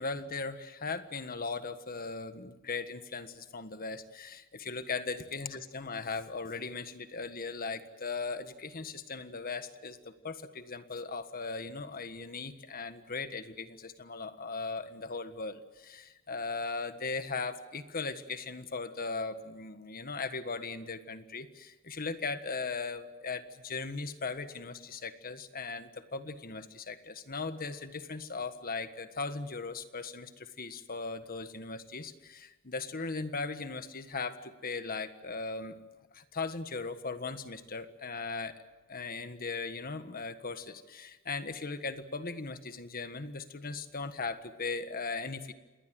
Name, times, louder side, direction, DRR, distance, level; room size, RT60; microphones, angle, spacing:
voice 1, 0.0-35.7 36.1-38.5 38.9-45.5, left 4 dB, 40° left, 10 dB, 1.5 m, -38 dB
27.5 x 20.5 x 7.7 m, 1.2 s
head